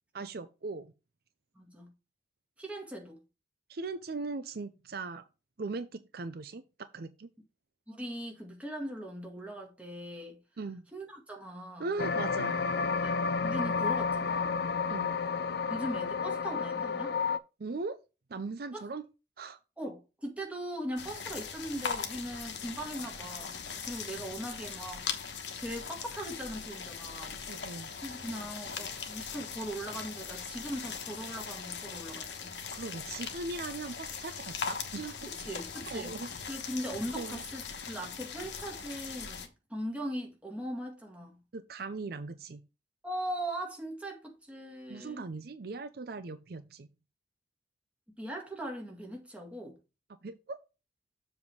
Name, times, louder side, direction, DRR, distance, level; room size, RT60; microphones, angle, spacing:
voice 1, 0.1-0.9 3.7-5.3 5.6-6.6 6.9-7.3 10.6-10.8 11.8-12.6 14.9-15.2 17.6-18.0 18.3-19.0 19.4-19.6 27.5-27.9 32.7-35.3 35.9-36.3 37.1-37.4 41.5-42.6 44.9-46.9 50.2-50.6, right 3 dB, 60° right, 0.5 m, -39 dB
voice 2, 1.6-1.9 2.6-3.2 7.9-10.4 10.9-11.9 13.0-13.1 13.4-14.6 15.7-17.2 18.7-18.8 19.8-25.2 25.6-27.4 28.0-32.6 35.3-36.2 36.5-41.4 43.0-45.3 48.2-49.8, right 1 dB, 10° right, 1.9 m, -40 dB
sound 1, 12.0-17.4, left 5 dB, 60° left, 0.5 m, -31 dB
sound 2, 21.0-39.5, left 6 dB, 85° left, 1.2 m, -40 dB
7.3 x 3.5 x 6.3 m
head